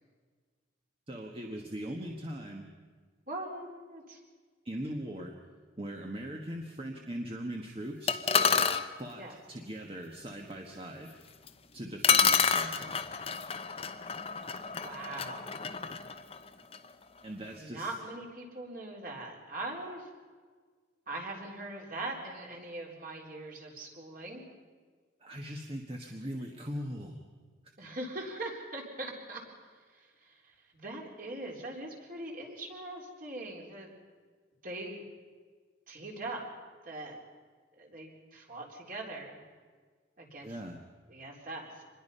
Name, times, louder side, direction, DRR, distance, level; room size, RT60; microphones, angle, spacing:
voice 1, 1.1-2.6 4.6-5.3 5.8-8.2 9.0-11.1 11.7-13.0 17.2-17.9 25.2-27.2 40.4-40.8, equal, 30° right, 2 dB, 1.4 m, -40 dB
voice 2, 3.3-4.2 9.2-9.3 14.8-15.5 17.5-20.1 21.1-24.4 27.8-29.4 29.9-33.9 34.6-35.0 35.9-36.5 36.8-37.2 37.8-39.5 40.2-40.6 41.1-41.8, right 2 dB, 45° right, 0 dB, 3.8 m, -41 dB
sound 1, 8.1-8.9 11.5-11.6 12.0-16.8, left 6 dB, 30° left, 0.9 m, -29 dB
25.5 x 21.0 x 5.6 m, 1.5 s
head